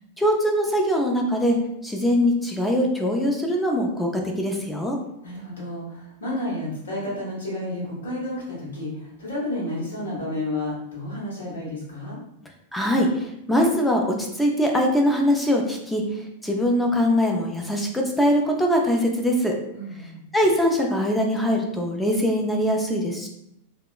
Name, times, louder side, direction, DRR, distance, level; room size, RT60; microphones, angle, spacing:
voice 1, 0.2-1.6 1.8-5.0 12.7-16.0 16.4-19.5 20.3-23.3, equal, 5° left, 0 dB, 0.4 m, -22 dB
voice 2, 5.2-12.2 19.7-20.2, left 1 dB, 70° left, -5 dB, 1.1 m, -31 dB
2.8 x 2.2 x 2.4 m, 0.79 s
figure-of-eight pair, 90°, 0 cm